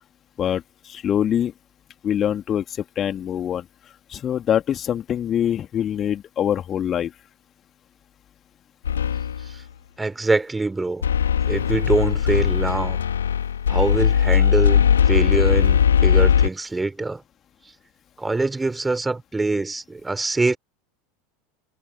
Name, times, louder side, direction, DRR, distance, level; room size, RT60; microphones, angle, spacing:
voice 1, 0.4-1.5 2.0-2.6 2.9-3.6 4.1-7.1, left 10 dB, 30° left, 3.3 m, -24 dB
sound 1, 8.8-9.6 11.0-16.5, left 8 dB, 70° left, 3.1 m, -19 dB
voice 2, 10.0-11.0 11.5-13.0 13.7-17.2 18.2-20.6, right 3 dB, 10° right, 4.4 m, -24 dB
figure-of-eight pair, 80°, 0 cm